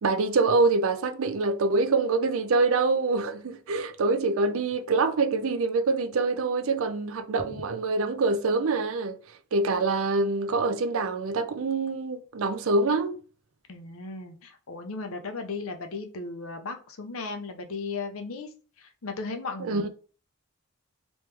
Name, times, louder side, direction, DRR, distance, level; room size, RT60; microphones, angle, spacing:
voice 1, 0.0-9.2 9.5-13.2 19.6-19.9, right 3 dB, 65° right, 0.4 m, -25 dB
voice 2, 13.7-18.5 18.8-19.9, left 3 dB, 70° left, 0.7 m, -36 dB
3.1 x 3.1 x 3.4 m
head